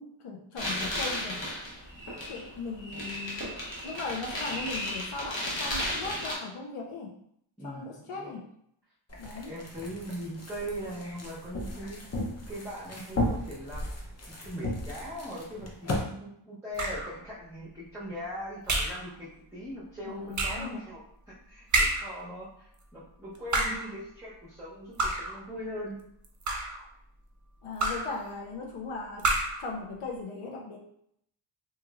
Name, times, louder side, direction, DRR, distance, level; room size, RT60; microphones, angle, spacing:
voice 1, 0.0-1.4 2.3-3.6 3.8-7.1 7.6-8.4 9.2-9.5 20.0-20.8 27.6-29.3 29.6-30.8, left 3 dB, 80° left, 0 dB, 0.6 m, -38 dB
sound 1, 0.6-6.3, left 1 dB, 60° left, 1.1 m, -34 dB
voice 2, 7.6-8.4 9.5-12.0 12.4-13.9 14.3-26.0, equal, 5° right, -8 dB, 0.7 m, -40 dB
sound 2, 9.1-16.0, left 1 dB, 30° left, 0.6 m, -35 dB
sound 3, 16.8-17.2 18.7-19.1 20.3-20.7 21.7-22.2 23.3-23.9 25.0-25.4 26.2-26.8 27.8-28.2 29.2-29.7, right 2 dB, 40° right, 0.5 m, -28 dB
2.9 x 2.9 x 2.3 m, 0.71 s
wide cardioid pair, 95°, 49 cm